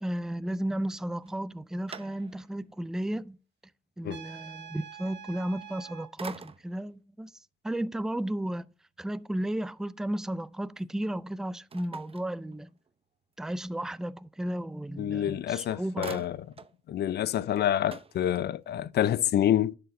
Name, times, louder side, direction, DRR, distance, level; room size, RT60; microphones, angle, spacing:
voice 1, 0.0-3.4 4.0-7.3 7.6-8.7 9.0-12.7 13.4-16.3, right 1 dB, 5° right, 0.4 m, -34 dB
sound 1, 1.2-2.7 3.2-3.3 5.5-5.8 6.2-6.9 11.7-13.0 15.1-15.2 15.5-16.8 17.1-17.2 17.5-18.8, right 5 dB, 30° right, 0.7 m, -46 dB
Trumpet, 4.1-6.1, right 9 dB, 65° right, 1.8 m, -45 dB
voice 2, 15.0-16.4 16.9-19.7, left 11 dB, 55° left, 0.4 m, -27 dB
10.5 x 6.7 x 2.6 m
cardioid pair, 90°, 20 cm